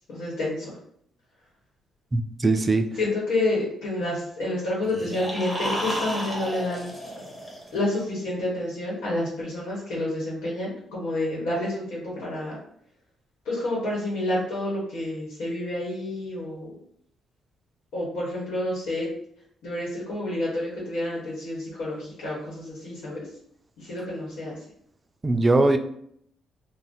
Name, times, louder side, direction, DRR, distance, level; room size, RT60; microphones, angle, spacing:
voice 1, 0.1-0.7 3.0-6.9 7.7-12.6 13.4-16.7 17.9-19.1 19.6-23.2 23.8-24.6, left 1 dB, 85° left, -5 dB, 1.1 m, -29 dB
voice 2, 2.1-2.9 25.2-25.8, right 2 dB, 25° right, 7 dB, 0.3 m, -20 dB
sound 1, 4.8-8.0, equal, 5° left, 1.0 m, -32 dB
2.5 x 2.1 x 3.7 m, 0.68 s
cardioid pair, 90°, 0 cm